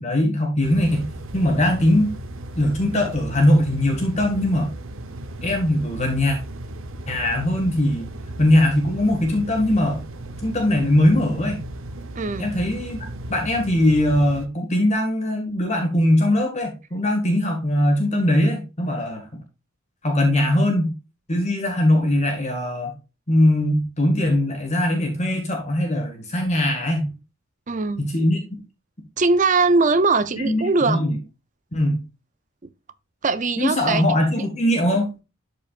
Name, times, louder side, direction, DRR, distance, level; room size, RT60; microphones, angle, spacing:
voice 1, 0.0-2.1 2.6-4.7 5.4-6.4 7.1-8.1 8.4-10.0 10.4-11.6 12.4-19.2 20.0-20.9 21.3-22.9 23.3-27.1 28.0-28.4 30.4-31.2 31.7-32.0 33.6-35.1, left 1 dB, 30° left, 1.9 m, -21 dB
sound 1, 0.6-14.5, right 1 dB, 65° right, 0.9 m, -36 dB
voice 2, 12.2-12.5 27.7-28.1 29.2-31.0 33.2-34.0, right 3 dB, 35° right, 0.6 m, -20 dB
12.0 x 5.0 x 2.5 m
head